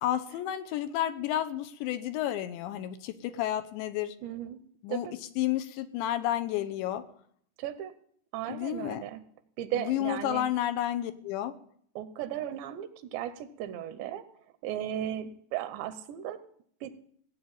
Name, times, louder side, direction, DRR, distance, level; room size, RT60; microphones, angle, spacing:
voice 1, 0.0-4.2 4.8-5.1 5.4-7.0 8.5-9.0 9.7-11.5, left 12 dB, 80° left, 9 dB, 3.1 m, -31 dB
voice 2, 4.2-4.6 4.9-5.1 7.6-7.9 8.3-9.3 9.6-10.4 12.0-14.3 14.6-16.4 16.8-16.9, right 11 dB, 80° right, 12 dB, 2.9 m, -36 dB
17.0 x 9.3 x 8.6 m, 0.64 s
omnidirectional pair, 5.4 m